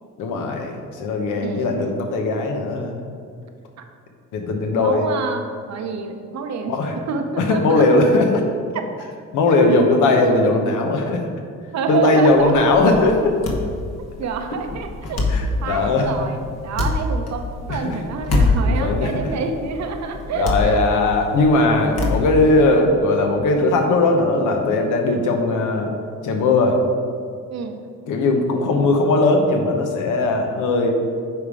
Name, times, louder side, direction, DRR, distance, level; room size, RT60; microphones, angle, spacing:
voice 1, 0.2-3.1 4.3-5.1 6.7-6.9 7.4-8.4 9.3-11.2 11.9-13.4 15.3-16.2 17.7-18.0 18.6-19.2 20.3-25.9 26.2-26.8 28.1-30.9, left 2 dB, 85° left, 3 dB, 1.0 m, -18 dB
voice 2, 1.4-1.8 4.8-6.7 7.1-8.1 8.7-8.9 11.7-12.5 14.0-20.8 27.5-27.8, right 5 dB, 65° right, 5 dB, 0.8 m, -28 dB
sound 1, 12.3-22.8, left 2 dB, 55° left, 1.3 m, -25 dB
9.2 x 3.6 x 4.9 m, 2.2 s
cardioid pair, 90°, 30 cm